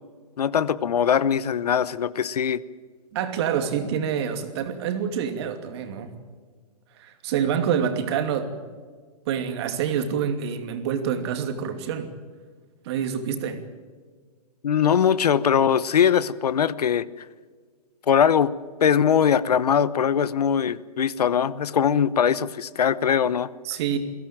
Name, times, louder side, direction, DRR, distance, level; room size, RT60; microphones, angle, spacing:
voice 1, 0.4-2.6 14.6-17.0 18.1-18.5 18.8-23.5, left 8 dB, 75° left, 17 dB, 1.1 m, -21 dB
voice 2, 3.1-6.1 7.0-8.6 9.2-12.1 12.8-13.6 23.6-24.0, right 8 dB, 40° right, 7 dB, 2.7 m, -27 dB
22.0 x 16.5 x 9.0 m, 1.5 s
hypercardioid pair, 150°, 20 cm